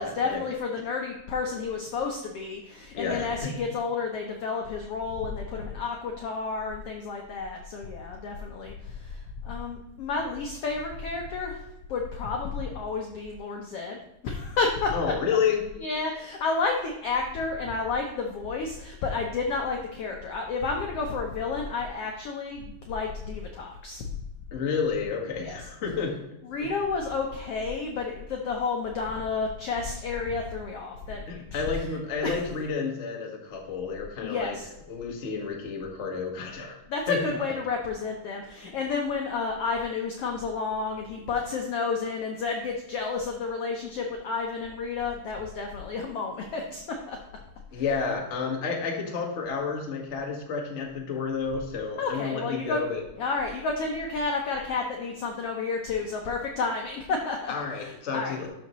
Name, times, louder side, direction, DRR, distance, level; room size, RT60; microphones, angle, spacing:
voice 1, 0.0-14.9 15.8-24.1 25.4-25.6 26.5-31.6 32.2-32.4 34.2-34.7 36.9-47.2 47.7-47.8 52.0-52.8 53.2-58.4, left 4 dB, 85° left, 1 dB, 1.3 m, -31 dB
voice 2, 2.9-3.3 14.9-15.6 24.5-26.1 26.6-26.7 31.1-34.5 34.9-36.8 37.1-37.2 47.7-53.0 57.5-58.5, left 5 dB, 55° left, 0 dB, 0.8 m, -30 dB
12.0 x 5.7 x 3.1 m, 0.89 s
omnidirectional pair, 4.0 m